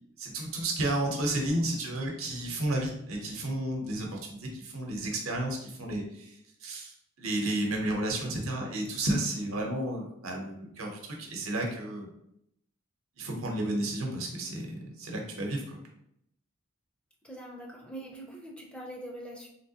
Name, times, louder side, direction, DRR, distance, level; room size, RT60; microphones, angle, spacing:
voice 1, 0.2-12.1 13.2-15.8, right 1 dB, 85° right, 1 dB, 0.8 m, -32 dB
voice 2, 17.2-19.5, right 1 dB, 5° left, -2 dB, 0.4 m, -43 dB
3.2 x 2.8 x 2.8 m, 0.75 s
head